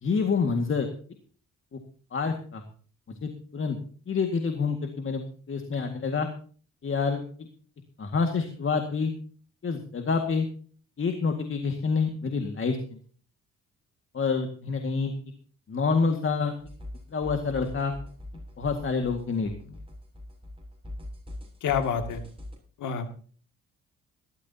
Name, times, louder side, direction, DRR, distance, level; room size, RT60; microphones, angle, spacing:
voice 1, 0.0-0.9 1.7-1.8 2.1-2.6 3.1-3.8 4.1-5.2 5.5-6.3 6.8-7.2 8.0-9.1 9.6-10.5 11.0-13.0 14.1-15.1 15.7-16.5 17.1-17.9 18.6-19.8, left 5 dB, 40° left, 5 dB, 2.1 m, -27 dB
sound 1, 16.6-22.6, left 1 dB, 20° right, 7.0 m, -42 dB
voice 2, 21.6-22.2 22.8-23.1, left 7 dB, 80° left, 7 dB, 2.5 m, -27 dB
19.5 x 13.5 x 2.9 m, 0.43 s
cardioid pair, 90°, 30 cm